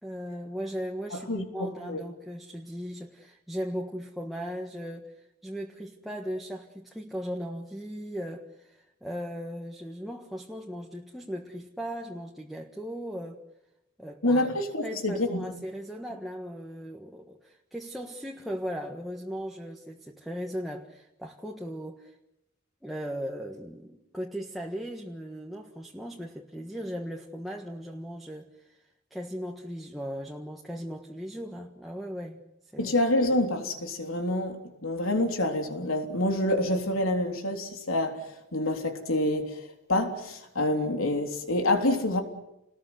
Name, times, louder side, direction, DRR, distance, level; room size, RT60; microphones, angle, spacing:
voice 1, 0.0-13.4 14.0-14.5 14.8-22.2 22.8-28.8 29.1-32.4 32.7-32.9, equal, ahead, 1.5 m, -37 dB
voice 2, 1.1-2.0 14.2-15.6 32.8-38.2 38.5-39.6 39.9-42.2, left 1 dB, 90° left, 3.6 m, -27 dB
29.5 x 20.5 x 8.0 m
head